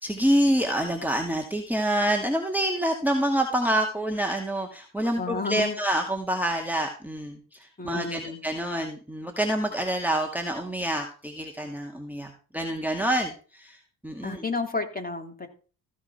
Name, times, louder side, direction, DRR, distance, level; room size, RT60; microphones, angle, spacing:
voice 1, 0.0-14.4, right 1 dB, 5° right, 2 dB, 2.1 m, -27 dB
voice 2, 5.2-5.8 7.8-8.4 14.2-15.5, left 4 dB, 20° left, 2 dB, 3.1 m, -31 dB
15.0 x 5.1 x 5.9 m, 0.38 s
figure-of-eight pair, 50°, 48 cm